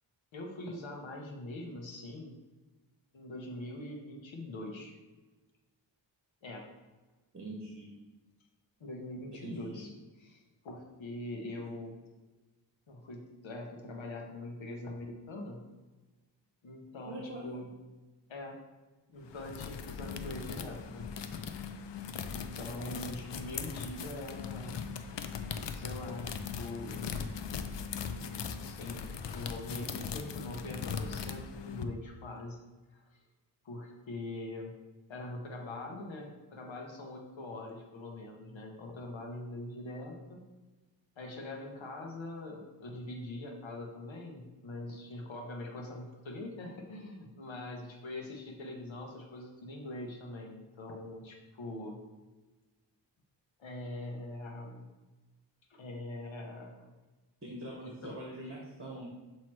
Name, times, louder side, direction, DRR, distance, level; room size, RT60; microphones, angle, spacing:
voice 1, 0.3-2.4 3.1-4.9 6.4-6.7 8.8-9.9 10.2-12.0 12.9-15.7 16.6-17.7 18.3-18.6 19.1-21.5 22.3-24.8 25.7-27.1 28.3-32.6 32.9-33.2 33.6-34.7 35.1-40.4 41.2-52.0 53.6-54.9 55.7-56.9 57.8-58.2, left 1 dB, 85° left, 1 dB, 1.0 m, -43 dB
voice 2, 7.3-7.9 9.4-9.8 17.1-17.6 57.4-59.1, right 1 dB, 30° right, -3 dB, 1.3 m, -43 dB
sound 1, 19.2-31.8, left 6 dB, 70° left, 0.6 m, -39 dB
7.3 x 3.0 x 4.5 m, 1.2 s
wide cardioid pair, 75°, 45 cm